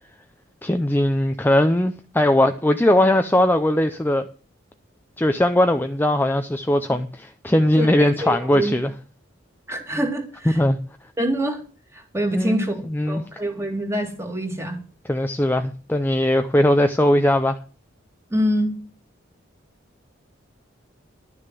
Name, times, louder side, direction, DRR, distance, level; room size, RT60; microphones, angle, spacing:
voice 1, 0.6-4.3 5.2-8.9 10.5-10.8 12.3-13.2 15.0-17.6, left 1 dB, 10° left, 0.5 m, -19 dB
voice 2, 7.8-8.7 9.7-10.6 11.2-11.6 11.9-14.8 18.3-18.7, equal, 15° right, 2.2 m, -25 dB
11.5 x 6.5 x 7.5 m
head